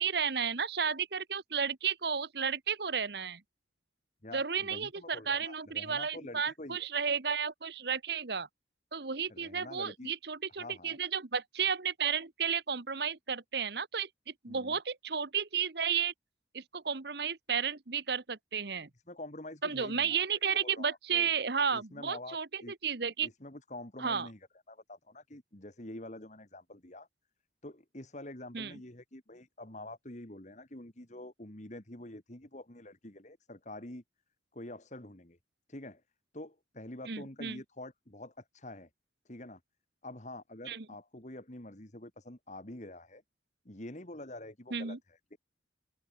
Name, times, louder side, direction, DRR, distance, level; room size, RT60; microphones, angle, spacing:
voice 1, 0.0-3.4 4.3-8.5 8.9-14.1 14.4-16.1 16.5-18.9 19.6-23.3 24.0-24.3 28.5-28.8 37.1-37.6 40.7-40.8 44.7-45.0, right 6 dB, 60° right, 1.1 m, -33 dB
voice 2, 4.2-6.9 9.3-10.1 10.6-11.0 14.5-14.8 19.1-20.2 20.6-21.3 21.7-22.7 23.2-24.4 24.7-27.1 27.6-34.0 34.5-35.4 35.7-36.0 36.3-38.9 39.3-39.6 40.0-43.2 43.7-45.4, left 1 dB, 40° left, 2.3 m, -46 dB
head